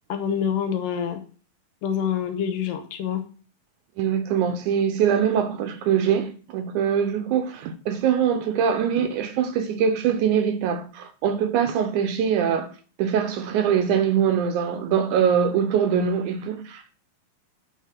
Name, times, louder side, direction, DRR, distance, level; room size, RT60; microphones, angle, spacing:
voice 1, 0.1-1.2 1.8-3.2, left 8 dB, 80° left, 2.6 m, -26 dB
voice 2, 4.0-12.7 13.0-16.9, right 8 dB, 75° right, 1.9 m, -23 dB
9.3 x 3.7 x 5.8 m
omnidirectional pair, 4.0 m